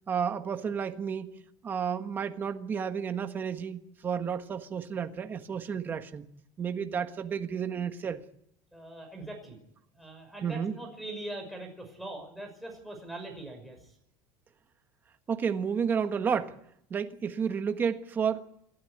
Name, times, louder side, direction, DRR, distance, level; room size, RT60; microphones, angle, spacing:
voice 1, 0.1-6.2 6.6-8.2 10.4-10.7 15.3-16.6 16.9-18.5, right 7 dB, 20° right, 1.4 m, -31 dB
voice 2, 8.7-9.6 9.9-14.0, right 2 dB, ahead, 5.8 m, -42 dB
28.0 x 12.5 x 9.6 m
cardioid pair, 175°, 10 cm